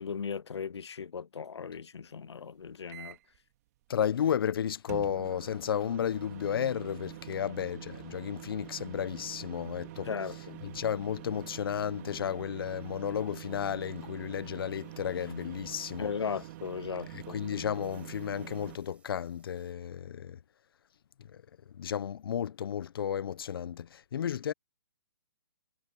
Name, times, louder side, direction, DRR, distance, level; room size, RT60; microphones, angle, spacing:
voice 1, 0.0-3.2 10.1-10.6 16.0-17.4, left 6 dB, 85° left, 0.7 m, -37 dB
sound 1, 2.9-3.4 4.9-18.8, right 16 dB, 35° right, 3.1 m, -46 dB
voice 2, 3.9-10.1 10.6-16.1 17.1-20.4 21.3-21.4 21.7-24.5, left 9 dB, 60° left, 1.1 m, -33 dB
sound 2, 9.5-19.7, right 6 dB, 10° right, 6.9 m, -73 dB
hypercardioid pair, 145°, 14 cm